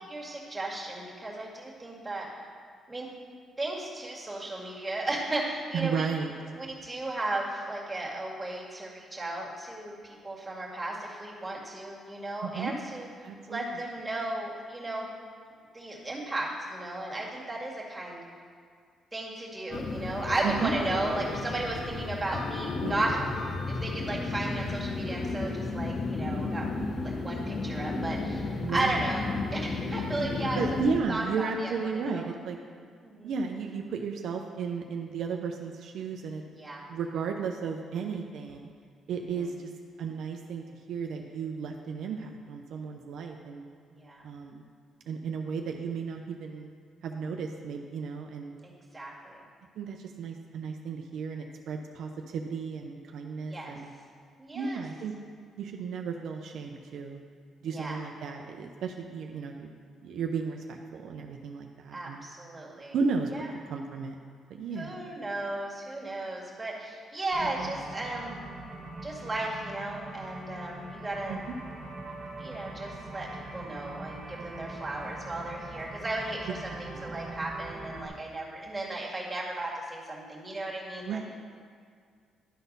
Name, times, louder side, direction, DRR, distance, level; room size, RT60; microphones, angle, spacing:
voice 1, 0.1-2.3 2.9-3.1 3.6-6.1 6.6-13.1 13.5-15.1 15.7-18.2 19.1-23.2 23.7-26.7 27.0-30.6 31.1-31.7 32.1-32.3 33.0-33.3 36.5-36.8 43.9-44.2 48.6-49.4 53.5-53.7 54.4-54.8 57.7-58.0 61.9-63.0 63.3-63.5 64.7-68.4 69.0-71.4 72.4-81.2, right 2 dB, 15° right, -4 dB, 1.9 m, -35 dB
voice 2, 5.7-6.3 12.4-12.7 13.2-13.8 20.4-20.7 22.8-22.9 28.6-29.1 30.5-32.6 33.2-36.4 36.9-38.7 39.1-39.7 40.0-43.7 44.2-44.6 45.1-46.7 47.0-48.5 49.8-53.9 54.5-55.1 55.6-57.2 57.6-59.7 60.0-62.3 62.9-63.3 63.7-64.2 64.5-65.1 67.4-67.7 71.3-71.4 76.5-77.1 81.0-81.3, right 5 dB, 75° right, 3 dB, 0.5 m, -34 dB
sound 1, 19.7-31.0, left 3 dB, 55° left, 0.7 m, -33 dB
sound 2, 67.3-78.1, right 2 dB, 45° right, 1.5 m, -42 dB
11.0 x 4.1 x 5.4 m, 2.1 s
cardioid pair, 95°, 0 cm